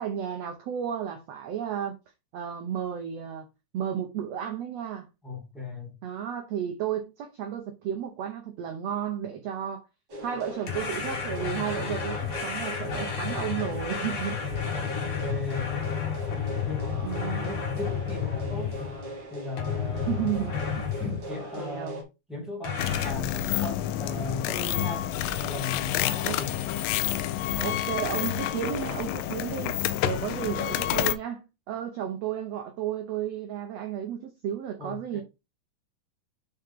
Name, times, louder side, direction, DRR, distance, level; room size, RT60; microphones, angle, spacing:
voice 1, 0.0-1.9 2.3-3.5 3.7-5.1 6.0-9.9 10.2-14.4 17.0-17.5 20.1-20.6 21.6-22.0 26.2-26.4 27.6-35.2, right 9 dB, 80° right, 1.5 m, -33 dB
voice 2, 5.2-5.9 14.7-14.9 15.2-15.8 16.3-16.9 17.4-18.8 19.3-20.2 21.0-22.0 22.3-25.1 25.4-26.5 34.8-35.2, left 2 dB, ahead, 2.0 m, -37 dB
sound 1, 10.1-22.0, right 1 dB, 35° right, 2.4 m, -39 dB
sound 2, 10.7-19.1 19.6-21.3 22.6-23.1, left 7 dB, 50° left, 2.0 m, -32 dB
sound 3, 22.8-31.2, left 12 dB, 90° left, 2.3 m, -29 dB
5.8 x 4.9 x 3.6 m
omnidirectional pair, 4.0 m